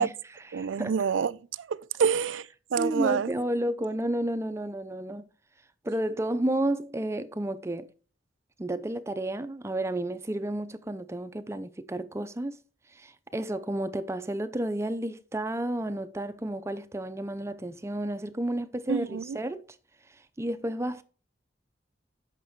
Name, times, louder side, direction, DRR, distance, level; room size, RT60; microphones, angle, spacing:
voice 1, 0.0-1.0 2.8-5.3 5.8-7.9 8.6-12.6 12.9-19.6 20.1-21.0, right 1 dB, 15° right, 0.4 m, -31 dB
voice 2, 0.5-1.3 1.6-2.5 2.7-3.3 18.9-19.4, right 6 dB, 85° right, 0.4 m, -27 dB
8.5 x 5.9 x 4.5 m
head